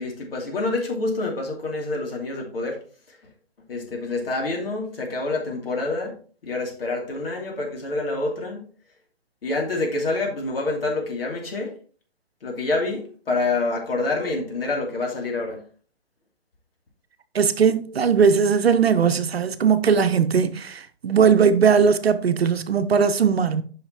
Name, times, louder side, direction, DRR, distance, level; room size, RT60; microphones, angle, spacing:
voice 1, 0.0-2.8 3.1-3.2 3.7-6.1 6.4-8.6 9.4-11.7 12.4-15.6, left 2 dB, 65° left, 2.7 m, -27 dB
voice 2, 17.3-23.6, right 6 dB, 70° right, 0.8 m, -19 dB
8.6 x 5.7 x 2.8 m
figure-of-eight pair, 135°, 32 cm